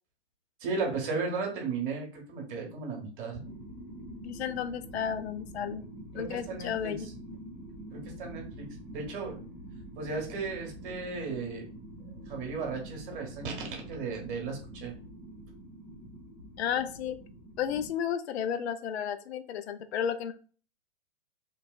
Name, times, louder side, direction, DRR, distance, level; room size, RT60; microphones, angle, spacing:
voice 1, 0.6-3.4 6.1-7.0 7.9-9.4 10.0-11.7 12.3-14.9, right 4 dB, 45° right, 1 dB, 1.3 m, -35 dB
sound 1, 3.4-17.9, right 1 dB, ahead, 0.5 m, -46 dB
voice 2, 4.2-5.8 6.1-7.1 16.6-17.2 17.6-20.3, left 8 dB, 65° left, 10 dB, 0.5 m, -32 dB
3.0 x 2.7 x 2.4 m, 0.39 s
hypercardioid pair, 120°, 35 cm